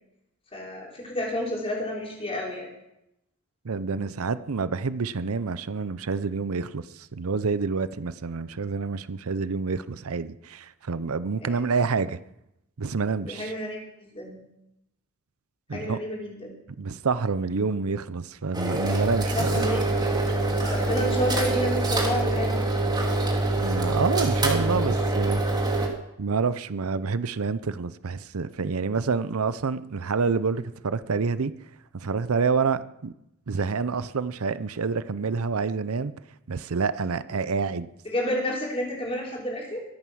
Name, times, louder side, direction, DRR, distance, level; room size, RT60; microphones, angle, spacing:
voice 1, 0.5-2.7 11.4-11.6 13.3-14.4 15.7-16.5 19.4-19.9 20.6-22.6 38.1-39.8, equal, 25° left, -3 dB, 5.2 m, -30 dB
voice 2, 3.6-12.2 12.8-13.5 15.7-16.0 16.8-19.7 23.6-25.4 26.2-31.5 31.9-33.1 33.5-36.1 36.5-37.9, right 4 dB, 80° right, 14 dB, 0.7 m, -28 dB
sound 1, 18.5-25.9, right 2 dB, 20° right, 2.8 m, -25 dB
23.5 x 9.1 x 6.3 m, 0.84 s
head